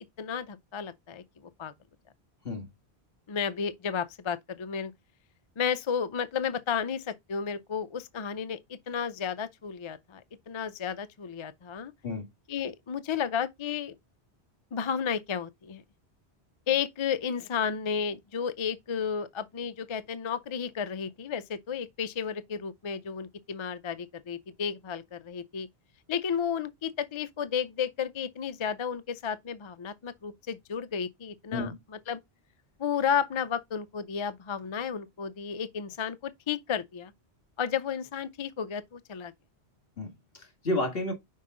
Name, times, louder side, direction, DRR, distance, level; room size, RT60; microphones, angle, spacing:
voice 1, 0.2-1.7 3.3-4.9 5.6-11.9 12.5-13.9 14.7-15.8 16.7-25.7 26.1-31.7 32.1-32.2 32.8-37.1 37.6-39.3, left 7 dB, 45° left, 0.4 m, -32 dB
voice 2, 40.0-41.1, left 2 dB, 60° left, 2.1 m, -31 dB
5.6 x 4.6 x 3.7 m
omnidirectional pair, 1.1 m